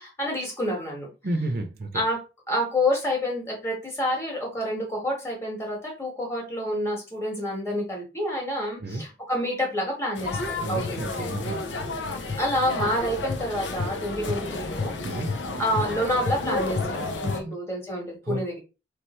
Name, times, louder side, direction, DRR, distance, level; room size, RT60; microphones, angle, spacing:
voice 1, 0.0-1.1 1.9-2.2 2.5-11.0 12.4-15.2 15.6-18.6, left 1 dB, 15° left, 1.8 m, -28 dB
voice 2, 1.2-2.0 8.8-9.0 10.6-11.7 15.0-15.3 17.4-17.5 18.2-18.4, right 2 dB, 55° right, 0.6 m, -31 dB
sound 1, 10.2-17.4, left 3 dB, 90° left, 0.9 m, -30 dB
3.4 x 3.3 x 4.4 m
head